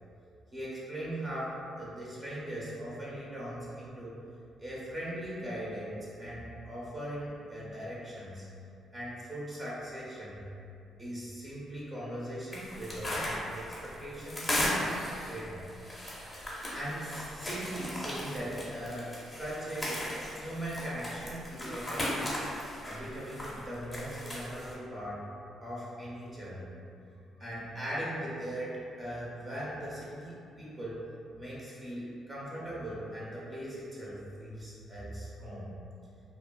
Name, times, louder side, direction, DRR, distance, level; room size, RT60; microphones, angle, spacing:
voice 1, 0.5-4.2 4.6-8.5 8.9-10.5 11.0-14.4 14.7-15.7 16.7-20.0 20.4-22.3 22.8-25.3 25.6-26.7 27.4-31.0 31.4-35.7, right 1 dB, 20° right, -7 dB, 0.8 m, -39 dB
sound 1, 12.5-24.7, left 1 dB, 15° left, 0.7 m, -37 dB
2.5 x 2.3 x 2.2 m, 2.5 s
cardioid pair, 90°, 0 cm